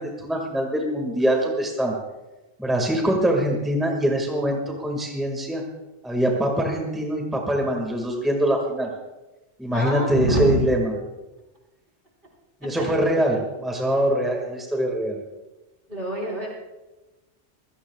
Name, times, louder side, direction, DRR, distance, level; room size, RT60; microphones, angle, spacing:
voice 1, 0.0-2.0 2.6-5.6 6.0-8.9 9.6-11.0 12.6-15.2, right 1 dB, ahead, 0 dB, 1.8 m, -23 dB
voice 2, 9.7-10.7 12.7-12.9 15.9-16.5, equal, 50° right, -3 dB, 4.9 m, -26 dB
26.5 x 16.5 x 2.4 m, 1.1 s
omnidirectional pair, 1.2 m